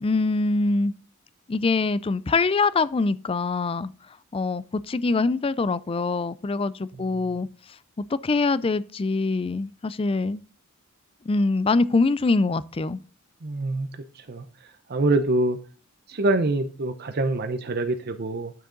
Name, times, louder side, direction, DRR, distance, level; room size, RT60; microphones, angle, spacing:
voice 1, 0.0-0.9 1.5-3.9 4.3-7.5 8.1-10.4 11.3-13.0, left 3 dB, 25° left, 0.4 m, -24 dB
voice 2, 6.9-7.4 13.4-15.6 16.1-18.5, right 2 dB, 50° right, 0.7 m, -26 dB
10.5 x 6.5 x 3.9 m
head